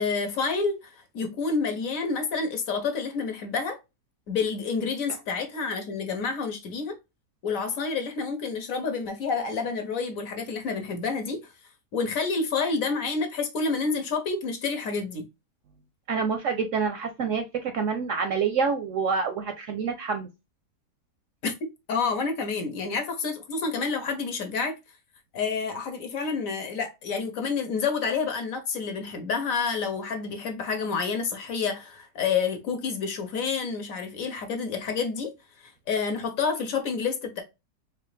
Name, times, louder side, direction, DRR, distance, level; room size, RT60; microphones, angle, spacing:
voice 1, 0.0-3.8 4.3-7.0 7.4-11.5 11.9-15.3 21.4-21.5 21.9-24.7 25.3-35.3 35.6-37.4, left 5 dB, 60° left, 1.1 m, -29 dB
voice 2, 16.1-20.3, right 5 dB, 65° right, 0.8 m, -27 dB
4.0 x 2.4 x 3.2 m
omnidirectional pair, 1.7 m